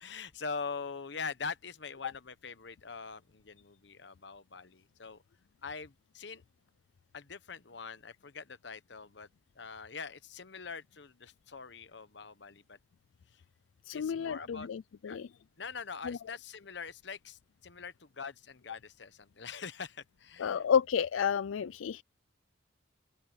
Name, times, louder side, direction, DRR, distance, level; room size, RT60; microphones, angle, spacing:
voice 1, 0.0-5.2 5.6-6.4 7.1-9.3 9.5-12.8 13.3-13.4 13.9-14.7 15.1-15.2 15.6-20.6, left 5 dB, 60° left, 1.0 m, -43 dB
voice 2, 13.9-15.3 16.0-16.2 20.4-22.0, left 7 dB, 85° left, 0.4 m, -31 dB
open air
head